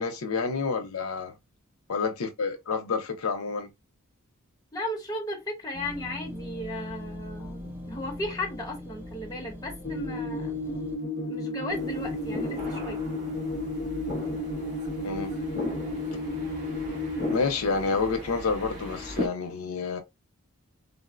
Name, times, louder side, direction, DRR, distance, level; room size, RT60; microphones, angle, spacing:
voice 1, 0.0-1.4 1.9-3.7 15.0-15.3 17.3-20.0, left 4 dB, 85° left, 0.6 m, -29 dB
voice 2, 4.7-10.6 11.3-13.0, left 1 dB, 15° left, 0.9 m, -35 dB
sound 1, 5.7-11.0, left 1 dB, 10° right, 0.5 m, -41 dB
sound 2, 9.8-17.3, left 1 dB, 45° left, 0.8 m, -32 dB
sound 3, 11.7-19.3, left 2 dB, 40° right, 1.1 m, -37 dB
3.7 x 2.0 x 2.4 m
head